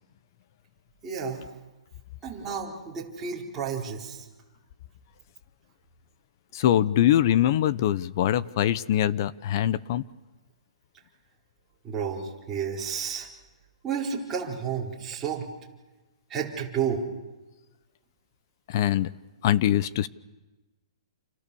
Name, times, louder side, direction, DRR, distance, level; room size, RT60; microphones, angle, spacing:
voice 1, 1.0-1.5 2.2-4.2 11.8-13.3 13.8-15.5 16.3-17.1, right 7 dB, 10° right, -5 dB, 4.4 m, -31 dB
voice 2, 6.5-10.0 18.7-19.1 19.4-20.1, left 11 dB, 40° left, 17 dB, 0.8 m, -23 dB
29.0 x 28.0 x 7.1 m, 1.1 s
hypercardioid pair, 165°, 3 cm